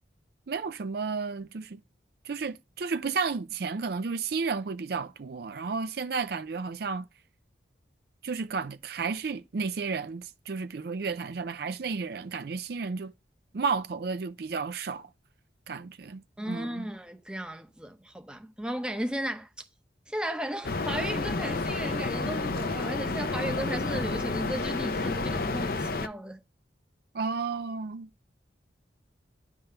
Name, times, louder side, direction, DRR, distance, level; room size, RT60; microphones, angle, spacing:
voice 1, 0.5-1.8 2.2-7.1 8.2-13.1 13.5-15.1 15.7-16.8 27.1-28.1, right 5 dB, 55° right, 0.4 m, -32 dB
voice 2, 16.4-19.5 20.1-26.4, right 1 dB, 5° right, 0.8 m, -35 dB
sound 1, 20.6-26.1, left 3 dB, 50° left, 0.7 m, -30 dB
10.0 x 3.7 x 6.7 m
head